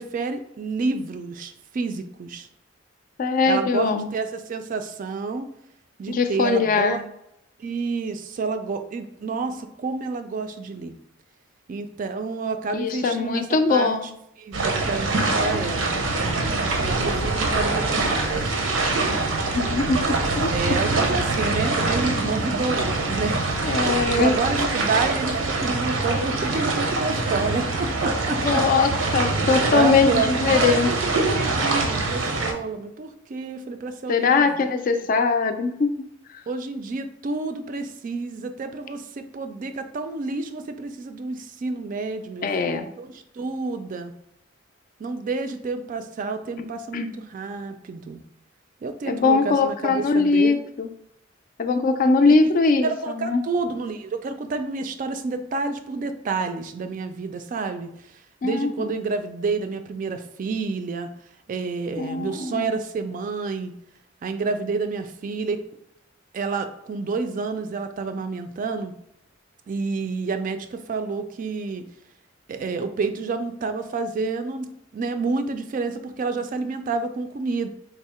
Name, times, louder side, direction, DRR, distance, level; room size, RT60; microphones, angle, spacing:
voice 1, 0.0-2.5 3.5-5.5 6.0-7.0 7.6-10.9 11.7-14.0 14.4-16.0 16.8-18.0 18.3-18.7 19.8-23.4 23.8-28.6 29.7-34.6 36.5-44.1 45.0-48.2 48.8-50.6 52.2-52.4 52.8-57.9 58.4-61.1 61.5-63.7 64.2-65.6 66.3-68.9 69.7-71.8 72.5-77.7, right 4 dB, 45° right, 8 dB, 0.3 m, -29 dB
voice 2, 3.2-4.1 6.1-7.0 12.7-14.1 17.5-17.7 19.5-20.5 23.6-24.7 28.4-30.9 34.1-36.1 42.4-42.9 46.6-46.7 46.9-47.1 49.1-50.9 51.6-53.4 58.4-58.9 62.0-62.7, left 4 dB, 45° left, 8 dB, 0.3 m, -21 dB
sound 1, 14.5-32.5, right 3 dB, 90° right, 0.6 m, -24 dB
3.5 x 2.0 x 4.2 m, 0.77 s
head